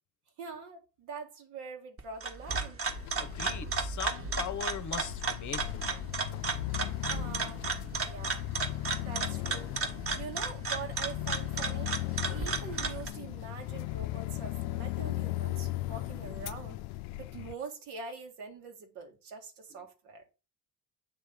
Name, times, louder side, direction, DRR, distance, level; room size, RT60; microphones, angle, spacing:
voice 1, 0.4-2.8 7.1-7.6 7.9-8.5 9.0-9.7 10.1-12.0 12.3-16.8 17.2-20.2, right 5 dB, 70° right, 1.9 m, -44 dB
sound 1, 2.0-13.1, right 4 dB, 30° right, 1.4 m, -34 dB
sound 2, 2.9-17.5, left 18 dB, 65° left, 0.5 m, -37 dB
voice 2, 3.2-6.1, left 9 dB, 45° left, 0.9 m, -40 dB
8.0 x 3.2 x 5.2 m
hypercardioid pair, 65°, 41 cm